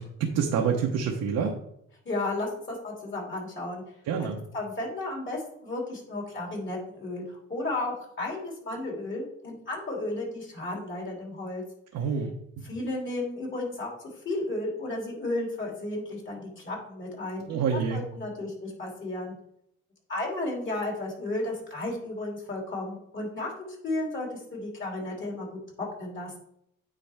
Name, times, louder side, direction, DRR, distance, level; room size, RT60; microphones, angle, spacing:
voice 1, 0.0-1.5 4.1-4.4 11.9-12.3 12.6-12.7 17.5-18.0, right 6 dB, 80° right, 0 dB, 1.0 m, -27 dB
voice 2, 2.0-3.8 4.2-4.3 4.5-11.6 12.6-13.9 14.2-19.3 20.1-26.4, left 2 dB, 40° left, -1 dB, 3.0 m, -33 dB
9.1 x 4.2 x 3.5 m, 0.74 s
cardioid pair, 90°, 30 cm